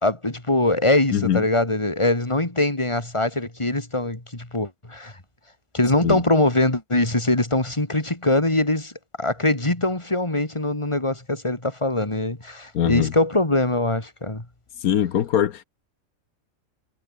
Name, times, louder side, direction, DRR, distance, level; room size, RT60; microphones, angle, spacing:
voice 1, 0.0-5.1 5.7-8.9 9.2-14.4, left 2 dB, 20° left, 3.2 m, -22 dB
voice 2, 1.1-1.4 6.0-6.2 12.7-13.1 14.8-15.6, left 10 dB, 85° left, 1.4 m, -22 dB
omnidirectional pair, 1.5 m